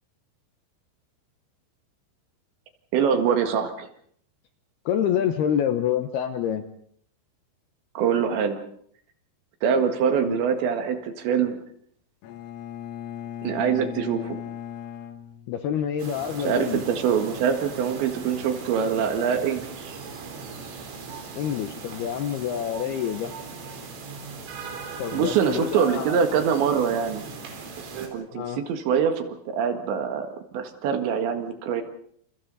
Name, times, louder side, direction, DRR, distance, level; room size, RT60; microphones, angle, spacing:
voice 1, 2.9-3.9 8.0-8.6 9.6-11.6 13.4-14.4 16.4-20.0 25.1-27.2 27.8-31.8, right 7 dB, 70° right, 6 dB, 3.9 m, -24 dB
voice 2, 4.9-6.6 10.2-10.4 15.5-16.8 21.4-23.3 25.0-26.2 28.3-28.6, left 9 dB, 75° left, 8 dB, 2.5 m, -27 dB
Bowed string instrument, 12.2-16.1, left 10 dB, 90° left, 4.3 m, -38 dB
sound 1, 16.0-28.1, right 5 dB, 85° right, 6.5 m, -39 dB
29.0 x 29.0 x 4.1 m, 0.62 s
omnidirectional pair, 5.7 m